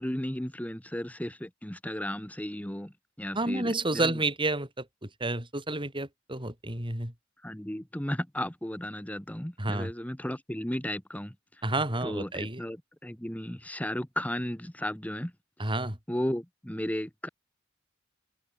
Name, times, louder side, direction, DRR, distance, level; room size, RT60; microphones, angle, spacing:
voice 1, 0.0-2.9 3.2-4.1 7.4-11.3 12.0-12.8 13.0-15.3 16.1-17.3, left 1 dB, 10° left, 1.4 m, -34 dB
voice 2, 3.3-7.1 9.6-9.9 11.6-12.6 15.6-16.0, right 2 dB, 25° right, 6.0 m, -30 dB
open air
head